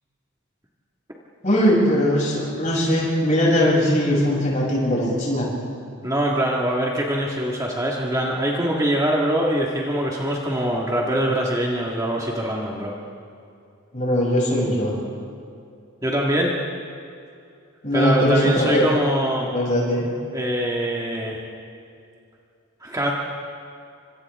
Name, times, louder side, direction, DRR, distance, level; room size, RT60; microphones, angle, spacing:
voice 1, 1.4-5.5 13.9-14.9 17.8-18.8 19.5-20.0, equal, 35° left, -4 dB, 7.3 m, -20 dB
voice 2, 6.0-12.9 16.0-16.5 17.9-19.5 20.3-21.4 22.8-23.1, right 1 dB, 15° right, -3 dB, 1.8 m, -23 dB
30.0 x 26.0 x 3.7 m, 2.5 s
head